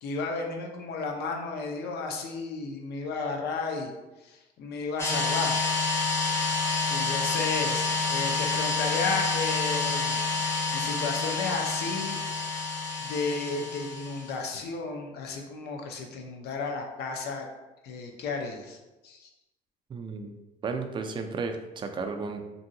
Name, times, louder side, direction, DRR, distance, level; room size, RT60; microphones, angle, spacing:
voice 1, 0.0-3.9 4.2-5.6 6.9-10.2 10.7-12.2 13.0-17.5 17.8-18.8 19.0-19.3, left 4 dB, 75° left, 2 dB, 0.6 m, -33 dB
sound 1, 5.0-14.4, left 4 dB, 15° left, 0.6 m, -28 dB
voice 2, 19.9-20.3 20.6-22.4, right 4 dB, 30° right, 5 dB, 0.3 m, -33 dB
2.8 x 2.7 x 2.6 m, 1.1 s
cardioid pair, 110°, 17 cm